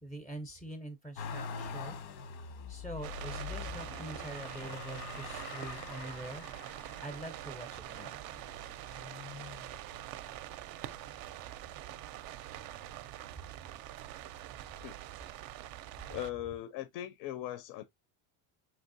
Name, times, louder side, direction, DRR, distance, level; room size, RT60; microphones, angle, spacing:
voice 1, 0.0-2.0 2.7-6.5 7.0-8.2, right 1 dB, ahead, 0.5 m, -44 dB
Motor vehicle (road), 1.2-10.3 10.9-11.7 12.0-13.1 14.1-14.2, left 6 dB, 90° left, 1.2 m, -45 dB
sound 1, 3.0-16.3, right 13 dB, 50° right, 0.5 m, -45 dB
voice 2, 16.1-17.8, left 13 dB, 60° left, 0.6 m, -39 dB
5.4 x 3.2 x 2.6 m
cardioid pair, 160°, 47 cm